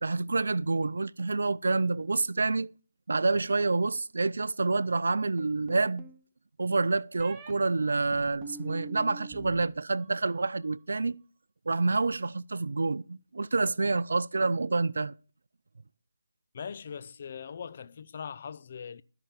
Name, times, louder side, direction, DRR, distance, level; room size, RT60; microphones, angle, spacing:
voice 1, 0.0-2.7 3.1-6.0 6.6-11.2 11.7-15.1, right 3 dB, 70° right, 0.4 m, -28 dB
sound 1, 5.4-6.2 7.2-7.5 8.1-9.6 9.9-10.5, right 4 dB, 20° right, 1.1 m, -45 dB
voice 2, 16.5-19.0, left 7 dB, 40° left, 0.4 m, -41 dB
13.0 x 5.8 x 6.8 m
figure-of-eight pair, 160°, 0 cm